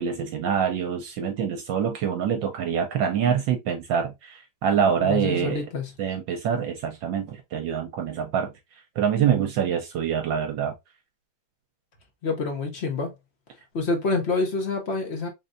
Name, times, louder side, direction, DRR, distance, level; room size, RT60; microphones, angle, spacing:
voice 1, 0.0-5.6 6.0-8.5 9.0-10.7, right 8 dB, 70° right, 1.3 m, -25 dB
voice 2, 5.0-5.9 12.2-13.1 13.7-15.3, left 3 dB, 50° left, 0.8 m, -27 dB
3.9 x 3.2 x 2.6 m
omnidirectional pair, 2.2 m